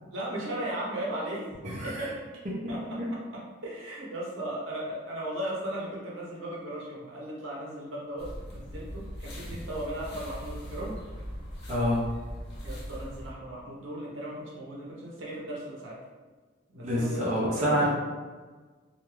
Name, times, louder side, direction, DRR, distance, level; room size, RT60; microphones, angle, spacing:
voice 1, 0.1-1.5 1.8-2.3 2.7-3.0 3.6-10.9 12.6-15.9 16.7-17.8, right 1 dB, 70° right, -4 dB, 0.8 m, -36 dB
voice 2, 1.6-2.1 11.7-12.0 16.8-17.9, equal, 35° right, -6 dB, 0.6 m, -27 dB
sound 1, 8.2-13.3, equal, 60° left, 0.7 m, -40 dB
2.4 x 2.2 x 3.1 m, 1.3 s
head